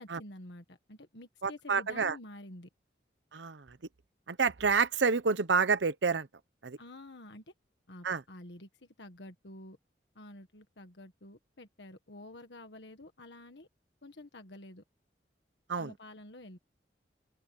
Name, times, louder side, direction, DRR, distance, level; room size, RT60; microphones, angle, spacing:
voice 1, 0.0-2.7 6.8-7.5 7.9-9.8 10.1-13.7 14.0-14.8 15.8-16.6, left 1 dB, 80° left, 1.7 m, -49 dB
voice 2, 1.4-2.2 3.3-3.6 4.3-6.3 6.6-6.8 8.0-8.2 15.7-15.9, right 5 dB, 90° right, 0.8 m, -28 dB
head